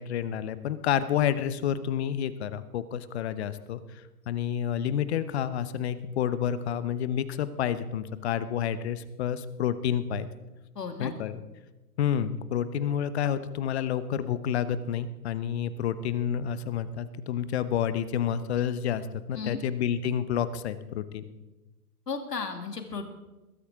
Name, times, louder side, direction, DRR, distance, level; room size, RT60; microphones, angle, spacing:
voice 1, 0.0-3.8 4.3-10.3 11.0-11.4 12.0-21.3, left 9 dB, 45° left, 14 dB, 1.0 m, -29 dB
voice 2, 10.7-11.1 19.3-19.6 22.1-23.1, left 5 dB, 85° left, 5 dB, 2.6 m, -34 dB
21.0 x 13.0 x 3.7 m, 1.1 s
hypercardioid pair, 130°, 47 cm